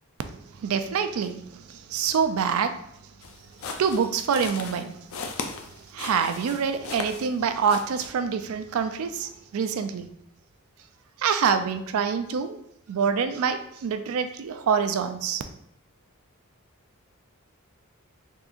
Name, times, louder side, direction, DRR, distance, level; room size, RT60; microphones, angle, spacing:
voice 1, 0.6-2.7 3.8-4.9 5.9-10.1 11.2-12.6 12.9-15.4, right 6 dB, 75° right, 0.3 m, -26 dB
sound 1, 3.2-7.4 7.7-8.1, left 4 dB, 65° left, 0.4 m, -37 dB
3.7 x 2.7 x 2.4 m
head